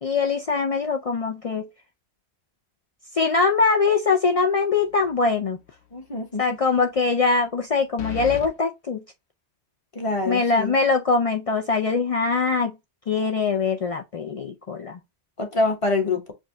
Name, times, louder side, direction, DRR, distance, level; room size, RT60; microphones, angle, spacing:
voice 1, 0.0-1.7 3.1-5.6 6.4-9.0 10.3-12.8 13.1-15.0, left 4 dB, 55° left, 0.4 m, -22 dB
sound 1, 4.9-5.3 5.7-5.8 8.0-8.5, left 10 dB, 75° left, 0.9 m, -35 dB
voice 2, 5.9-6.6 9.9-10.7 15.4-16.3, left 3 dB, 30° left, 1.0 m, -25 dB
5.1 x 2.2 x 3.7 m
omnidirectional pair, 1.1 m